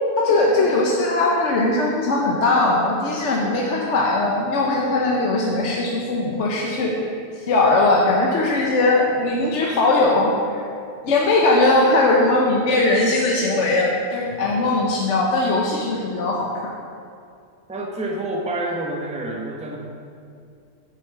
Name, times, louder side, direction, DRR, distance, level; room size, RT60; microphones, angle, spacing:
voice 1, 0.2-10.6 11.0-16.7, left 2 dB, 55° left, -2 dB, 1.1 m, -20 dB
voice 2, 17.7-19.8, right 1 dB, 5° right, 1 dB, 0.5 m, -28 dB
6.8 x 6.4 x 7.1 m, 2.4 s
omnidirectional pair, 1.6 m